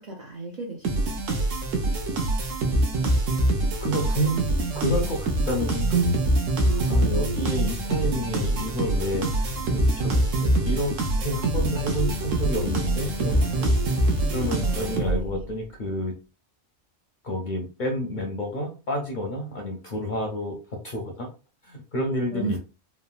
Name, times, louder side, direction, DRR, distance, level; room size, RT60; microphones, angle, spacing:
voice 1, 0.0-1.4 6.6-7.8 14.5-15.4 22.3-22.6, right 3 dB, 55° right, -1 dB, 0.5 m, -36 dB
sound 1, 0.8-15.4, right 1 dB, 90° right, 1.0 m, -24 dB
voice 2, 3.8-4.5 4.7-6.0 6.9-10.9 11.2-13.7 14.3-16.1 17.2-20.5 20.8-21.3 21.6-22.6, equal, 55° left, 2 dB, 0.5 m, -29 dB
sound 2, 8.0-15.1, left 4 dB, 90° left, 1.0 m, -40 dB
3.2 x 2.0 x 2.4 m, 0.32 s
omnidirectional pair, 1.3 m